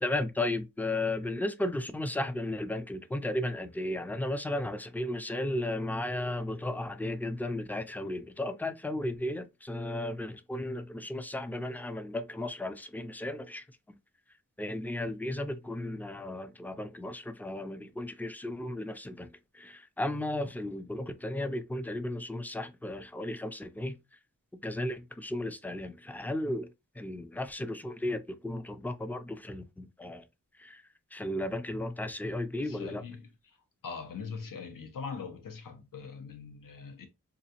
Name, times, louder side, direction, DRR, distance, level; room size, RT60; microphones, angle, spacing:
voice 1, 0.0-13.6 14.6-24.0 24.6-26.7 27.0-30.3 30.6-30.8 31.1-33.0, left 1 dB, 5° left, 0.3 m, -34 dB
voice 2, 32.6-33.6 33.8-37.1, left 5 dB, 90° left, 0.8 m, -42 dB
3.9 x 2.4 x 2.8 m
wide cardioid pair, 110°, 32 cm